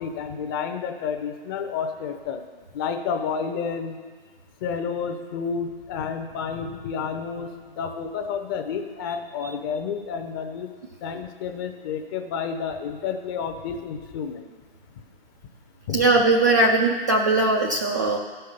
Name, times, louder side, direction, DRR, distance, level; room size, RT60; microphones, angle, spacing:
voice 1, 0.0-2.4 2.7-4.0 4.6-7.5 7.8-10.7 11.0-14.5 15.9-16.1, left 6 dB, 25° left, 6 dB, 0.7 m, -30 dB
voice 2, 15.9-18.2, right 2 dB, 20° right, 0 dB, 0.3 m, -20 dB
13.5 x 5.7 x 6.7 m, 1.5 s
figure-of-eight pair, 135°, 30 cm